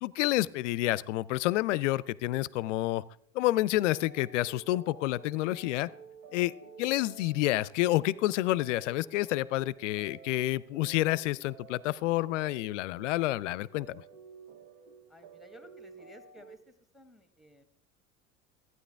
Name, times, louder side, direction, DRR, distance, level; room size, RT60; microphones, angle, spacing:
voice 1, 0.0-3.0 3.3-5.9 6.3-6.5 6.8-14.0, left 16 dB, 65° left, 21 dB, 0.5 m, -29 dB
sound 1, 3.7-16.6, right 5 dB, 80° right, 0.9 m, -53 dB
voice 2, 15.1-17.6, equal, ahead, 8 dB, 1.3 m, -55 dB
14.5 x 9.4 x 3.4 m, 0.66 s
figure-of-eight pair, 70°, 39 cm